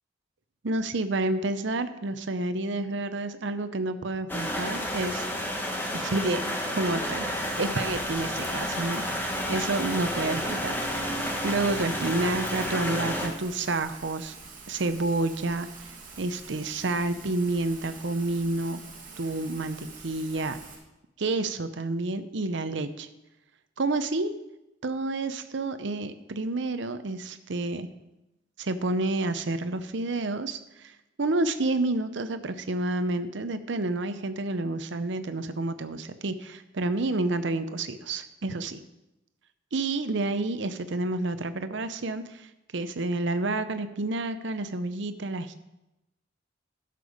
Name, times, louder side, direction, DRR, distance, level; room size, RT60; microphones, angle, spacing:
voice 1, 0.6-5.3 5.9-7.3 7.6-11.2 11.4-14.3 14.7-15.7 16.2-18.8 19.2-19.8 20.0-20.6 21.2-23.1 23.8-24.3 24.8-27.9 28.6-30.9 31.2-38.8 39.7-42.5 42.7-45.6, right 2 dB, 60° right, 11 dB, 0.7 m, -29 dB
sound 1, 4.3-13.3, equal, 10° left, 1.2 m, -31 dB
Rain, 7.4-20.8, right 4 dB, 40° right, 1.8 m, -46 dB
12.0 x 6.8 x 5.0 m, 0.95 s
head